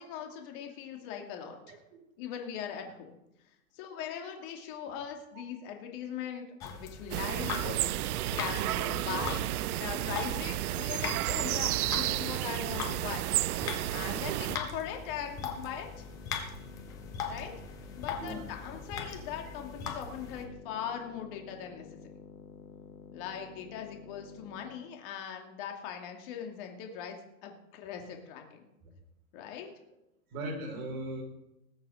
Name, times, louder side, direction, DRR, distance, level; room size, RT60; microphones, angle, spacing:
voice 1, 0.0-1.8 2.2-3.0 3.7-13.3 13.9-16.0 17.3-17.5 18.0-21.9 23.1-27.2 27.4-28.7 29.3-29.7, left 8 dB, 40° left, 3 dB, 2.5 m, -40 dB
sound 1, 6.6-20.4, left 5 dB, 10° left, 0.4 m, -41 dB
sound 2, 7.1-14.6, right 15 dB, 80° right, 0.5 m, -32 dB
sound 3, 13.9-24.9, left 6 dB, 75° left, 2.1 m, -52 dB
voice 2, 30.3-31.2, right 1 dB, 40° right, 0 dB, 4.9 m, -38 dB
19.5 x 7.3 x 5.1 m, 0.87 s
hypercardioid pair, 150°, 43 cm